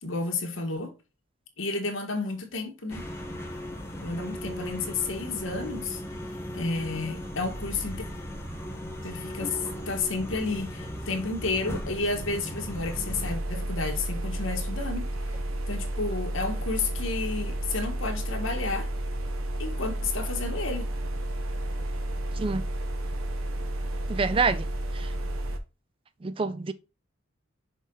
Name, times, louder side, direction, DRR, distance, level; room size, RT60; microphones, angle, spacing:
voice 1, 0.0-1.0 1.6-3.1 4.0-6.0 6.5-8.0 9.0-15.1 15.7-18.9 19.6-20.9, left 3 dB, 70° left, 1.5 m, -31 dB
sound 1, 2.9-13.3, equal, 10° left, 1.1 m, -37 dB
sound 2, 12.5-25.6, right 1 dB, 85° right, 1.0 m, -32 dB
voice 2, 24.1-24.6 25.0-25.1 26.2-26.7, right 4 dB, 25° right, 0.3 m, -26 dB
6.2 x 3.9 x 3.9 m
head